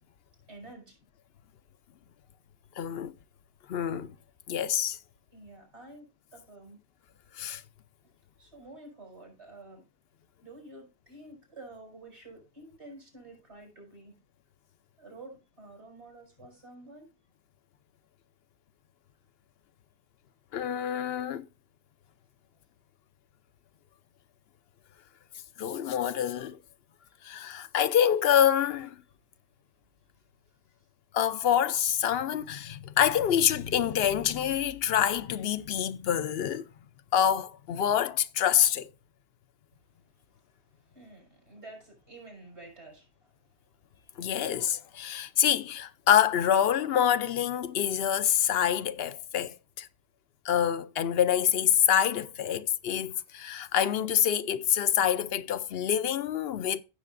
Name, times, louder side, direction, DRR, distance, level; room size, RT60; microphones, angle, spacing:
voice 1, 0.5-1.0 5.3-6.8 8.4-9.8 10.4-14.2 15.0-17.1 30.8-30.9 40.1-40.2 40.8-43.5, right 2 dB, 90° right, 5.4 m, -49 dB
voice 2, 2.8-3.1 3.7-4.1 4.5-5.0 7.3-7.6 20.5-21.5 25.6-26.6 27.2-29.0 31.1-36.7 37.1-38.9 44.2-49.9 50.4-56.8, left 9 dB, 70° left, 0.8 m, -26 dB
15.5 x 6.6 x 2.5 m
omnidirectional pair, 1.1 m